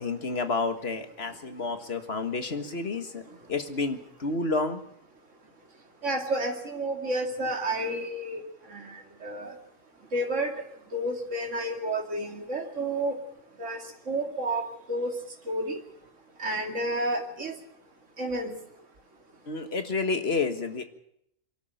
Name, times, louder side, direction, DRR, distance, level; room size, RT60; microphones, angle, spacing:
voice 1, 0.0-3.2 3.5-4.8 19.5-20.8, left 3 dB, 50° left, 8 dB, 1.9 m, -30 dB
voice 2, 6.0-8.4 8.7-9.0 9.2-9.5 10.1-10.5 10.9-13.2 13.6-13.8 14.1-15.1 15.5-15.8 16.4-17.5 18.2-18.5, right 1 dB, 65° right, 2 dB, 2.8 m, -30 dB
23.5 x 12.5 x 9.1 m, 0.76 s
omnidirectional pair, 1.3 m